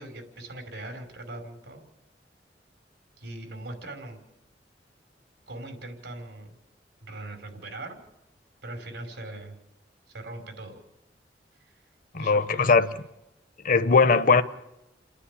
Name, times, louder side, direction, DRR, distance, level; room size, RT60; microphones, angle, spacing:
voice 1, 0.0-1.8 3.2-4.2 5.5-6.6 7.0-8.0 8.6-9.5 10.1-10.8 11.6-11.8 12.2-12.7, right 2 dB, 85° right, 5.3 m, -40 dB
voice 2, 12.1-12.9 13.6-14.4, left 4 dB, 50° left, 0.9 m, -20 dB
29.5 x 10.0 x 10.0 m
head